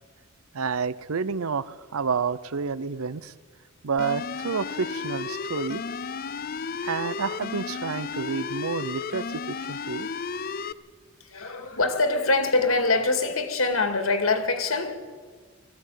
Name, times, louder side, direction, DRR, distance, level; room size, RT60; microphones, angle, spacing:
voice 1, 0.5-3.3 3.8-5.8 6.8-10.1, right 5 dB, 80° right, 0.6 m, -29 dB
sound 1, 4.0-10.7, left 5 dB, 45° left, 0.5 m, -33 dB
voice 2, 11.2-14.9, left 3 dB, 75° left, 2.2 m, -24 dB
19.5 x 15.0 x 9.3 m
head